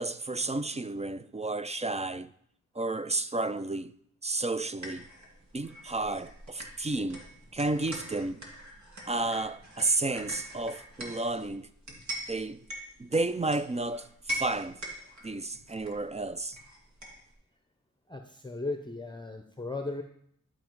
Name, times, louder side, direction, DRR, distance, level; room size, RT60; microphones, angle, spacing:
voice 1, 0.0-2.3 2.8-3.9 4.2-5.1 5.5-7.2 7.5-8.4 9.1-11.7 12.3-12.6 13.0-14.8 15.2-16.6, right 2 dB, 20° right, 0.4 m, -31 dB
sound 1, 4.8-17.3, equal, 65° right, 2.1 m, -43 dB
voice 2, 18.1-20.0, left 2 dB, 15° left, 0.7 m, -36 dB
11.5 x 5.0 x 4.7 m
wide cardioid pair, 60°, 31 cm